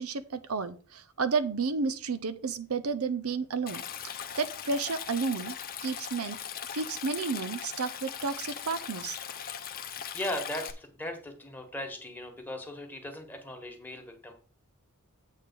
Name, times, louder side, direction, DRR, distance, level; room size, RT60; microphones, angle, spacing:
voice 1, 0.0-5.6 5.8-6.4 6.7-9.2, right 4 dB, 80° right, 12 dB, 0.7 m, -32 dB
Stream, 3.7-10.7, left 8 dB, 45° left, 0.7 m, -39 dB
voice 2, 10.1-14.3, left 1 dB, 10° left, 2 dB, 1.5 m, -38 dB
8.4 x 3.6 x 6.7 m, 0.39 s
head